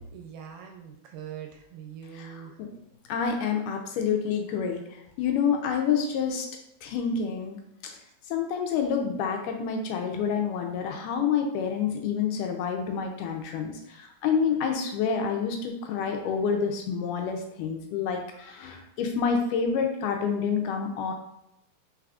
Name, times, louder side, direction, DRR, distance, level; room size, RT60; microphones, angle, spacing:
voice 1, 0.1-2.6 3.3-3.5, right 8 dB, 80° right, 3 dB, 2.0 m, -43 dB
voice 2, 2.1-2.5 3.1-4.8 5.2-6.5 6.8-7.6 7.8-7.9 8.3-21.1, left 6 dB, 80° left, 3 dB, 2.0 m, -28 dB
4.7 x 4.0 x 2.4 m, 0.78 s
omnidirectional pair, 3.9 m